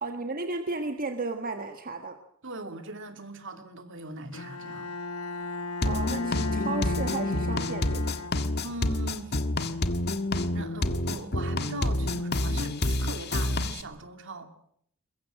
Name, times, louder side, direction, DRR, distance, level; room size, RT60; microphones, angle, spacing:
voice 1, 0.0-2.2 5.8-8.1, right 3 dB, 40° right, 6 dB, 1.5 m, -34 dB
voice 2, 2.4-4.9 8.6-9.4 10.5-14.5, right 2 dB, 60° right, 7 dB, 2.8 m, -40 dB
Bowed string instrument, 4.3-8.9, left 3 dB, 85° left, 1.4 m, -36 dB
sound 1, 5.8-13.8, left 1 dB, 50° left, 1.5 m, -28 dB
22.0 x 22.0 x 7.7 m, 0.66 s
head